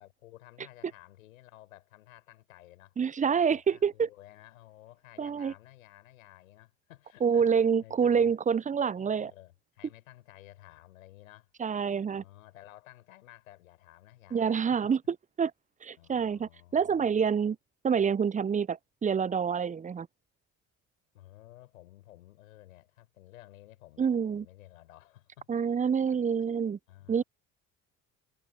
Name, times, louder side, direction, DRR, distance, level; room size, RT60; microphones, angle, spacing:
voice 1, 0.0-3.0 3.3-8.3 8.9-11.5 12.1-14.9 16.0-17.2 21.1-25.5 26.1-26.2 26.9-27.2, left 15 dB, 85° left, 5.9 m, -54 dB
voice 2, 3.0-4.1 5.2-5.5 7.2-9.3 11.6-12.2 14.3-15.0 15.4-15.5 15.8-17.6 17.8-20.1 24.0-24.4 25.5-26.8 27.1-27.2, right 6 dB, 20° right, 0.5 m, -27 dB
hypercardioid pair, 55°, 40 cm